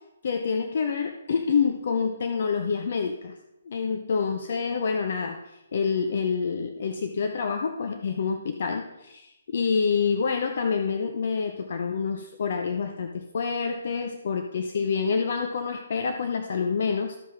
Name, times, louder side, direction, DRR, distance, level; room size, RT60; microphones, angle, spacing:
voice 1, 0.2-3.4 3.7-17.2, left 5 dB, 55° left, 6 dB, 0.7 m, -27 dB
14.0 x 5.3 x 3.6 m, 0.92 s
figure-of-eight pair, 135°, 0 cm